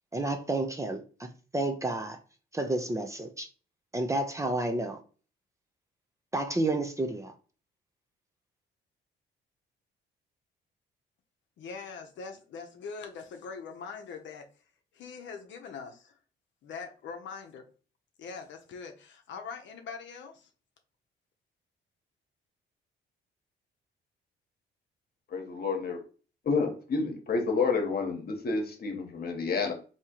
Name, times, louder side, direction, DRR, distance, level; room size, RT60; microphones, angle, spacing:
voice 1, 0.1-1.3 1.5-2.2 2.5-3.5 3.9-5.0 6.3-7.3, right 2 dB, 15° right, 0.5 m, -30 dB
voice 2, 11.6-14.4 15.0-16.0 16.6-17.6 18.2-20.3, left 5 dB, 70° left, 0.7 m, -42 dB
voice 3, 25.3-26.0 26.5-29.7, left 4 dB, 50° left, 1.0 m, -29 dB
3.5 x 2.8 x 2.9 m
cardioid pair, 90°, 20 cm